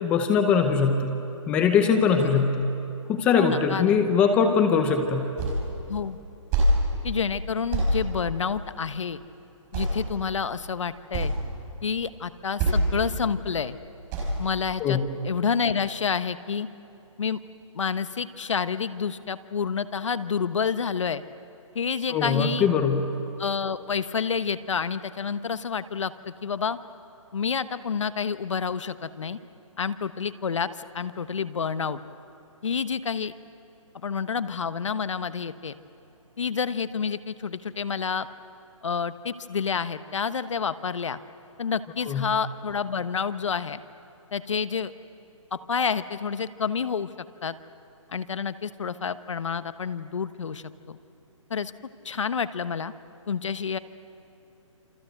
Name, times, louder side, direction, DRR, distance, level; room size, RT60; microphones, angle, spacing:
voice 1, 0.0-1.2 1.5-2.7 3.1-5.3 14.8-15.0 22.1-23.1 42.0-42.3, left 6 dB, 5° left, 6 dB, 0.7 m, -22 dB
voice 2, 2.1-2.4 3.4-4.0 5.9-6.2 7.0-9.2 9.7-11.3 11.8-13.8 14.4-15.0 15.2-16.7 17.2-17.4 17.7-21.2 21.7-22.7 23.4-26.8 27.3-29.4 29.8-32.0 32.6-33.3 34.0-35.8 36.4-38.3 38.8-41.2 41.6-43.8 44.3-44.9 45.5-47.1 47.4-47.5 48.1-51.0 51.5-51.7 52.0-52.9 53.3-53.8, left 6 dB, 65° left, 12 dB, 1.2 m, -29 dB
sound 1, 5.4-5.7 6.0-6.8 7.1-7.3 7.7-7.9 9.1-9.2 9.7-10.2 10.6-10.7 10.9-11.3 12.1-12.2 12.6-13.0 13.3-13.5 14.1-14.4, right 1 dB, 15° right, 5.2 m, -24 dB
28.0 x 26.0 x 8.0 m, 3.0 s
hypercardioid pair, 170°, 17 cm